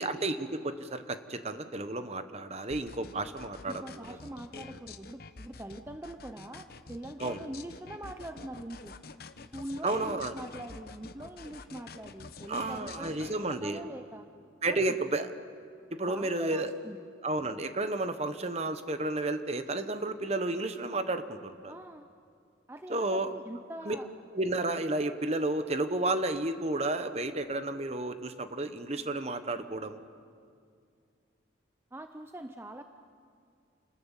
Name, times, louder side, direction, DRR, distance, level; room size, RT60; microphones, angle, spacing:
voice 1, 0.0-4.2 7.2-7.4 9.8-10.3 12.5-13.8 14.6-15.3 15.9-16.7 17.2-21.7 22.9-23.3 23.8-24.0 24.3-30.0, right 2 dB, 35° right, 9 dB, 1.1 m, -32 dB
sound 1, 2.7-13.4, left 4 dB, 50° left, 0.9 m, -47 dB
voice 2, 3.7-9.0 9.5-14.3 14.7-15.0 16.1-17.0 21.7-22.1 22.7-24.1 31.9-32.8, right 1 dB, 10° right, 7 dB, 0.6 m, -43 dB
29.0 x 19.5 x 7.3 m, 2.3 s
head